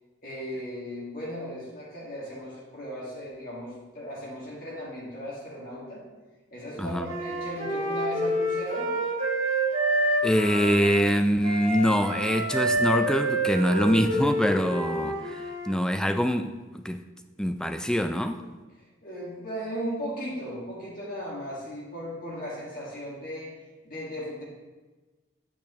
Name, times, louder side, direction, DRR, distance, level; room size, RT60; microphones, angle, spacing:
voice 1, 0.2-6.0 6.5-8.9 19.0-23.5 23.8-24.4, equal, 45° left, -5 dB, 1.9 m, -36 dB
Wind instrument woodwind instrument, 7.0-11.1 11.4-15.7, right 1 dB, 50° right, 2.7 m, -28 dB
voice 2, 10.2-17.0 17.4-18.4, equal, 5° left, 8 dB, 0.3 m, -24 dB
8.5 x 8.4 x 3.0 m, 1.3 s
head